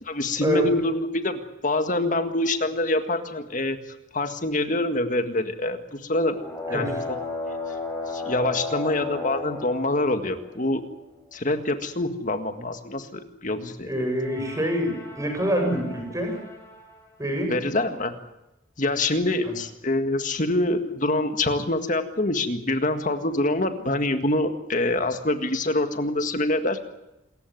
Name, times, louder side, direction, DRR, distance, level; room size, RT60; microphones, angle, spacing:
voice 1, 0.0-3.8 4.1-6.4 6.7-6.9 8.1-10.8 11.3-13.9 17.5-18.1 18.8-26.8, left 2 dB, 40° left, 8 dB, 1.8 m, -25 dB
sound 1, 6.2-10.7 14.1-17.0, left 3 dB, 15° left, 5.3 m, -35 dB
voice 2, 13.8-16.4 17.2-17.5 19.4-19.5, equal, 15° right, 3 dB, 7.4 m, -26 dB
27.0 x 15.0 x 9.5 m, 0.93 s
head